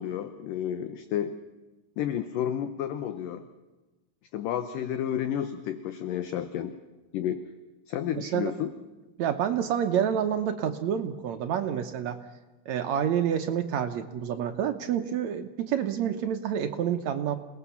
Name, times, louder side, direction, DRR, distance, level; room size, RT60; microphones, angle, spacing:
voice 1, 0.0-1.4 2.0-3.4 4.3-6.7 7.1-7.5 7.9-8.7, left 10 dB, 70° left, 10 dB, 2.3 m, -31 dB
voice 2, 8.2-8.5 9.2-12.2 12.7-17.4, right 9 dB, 75° right, 7 dB, 1.6 m, -28 dB
27.5 x 19.5 x 7.1 m, 1.2 s
omnidirectional pair, 4.5 m